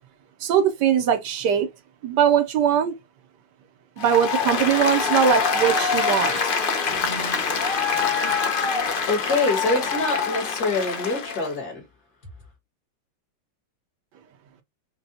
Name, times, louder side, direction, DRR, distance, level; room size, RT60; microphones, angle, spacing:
voice 1, 0.4-1.7 2.0-2.9 4.0-6.5, right 8 dB, 75° right, 1.2 m, -21 dB
Applause, 4.0-11.5, left 5 dB, 75° left, 0.5 m, -24 dB
voice 2, 9.1-11.8, left 3 dB, 55° left, 1.9 m, -25 dB
5.2 x 2.2 x 2.6 m
omnidirectional pair, 2.0 m